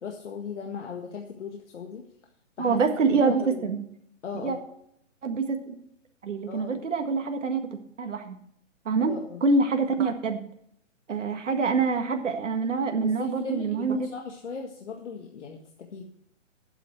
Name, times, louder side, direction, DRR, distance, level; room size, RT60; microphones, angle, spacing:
voice 1, 0.0-2.1 2.6-2.8 3.1-3.7 4.2-4.6 6.5-6.9 9.0-9.4 13.0-16.0, left 6 dB, 65° left, 1 dB, 1.8 m, -38 dB
voice 2, 2.6-3.8 4.4-4.6 5.2-5.8 6.2-7.7 8.0-8.4 8.9-9.1 9.4-10.4 11.1-14.0, right 4 dB, 70° right, 5 dB, 1.9 m, -25 dB
12.0 x 8.6 x 4.5 m, 0.70 s
hypercardioid pair, 155°, 38 cm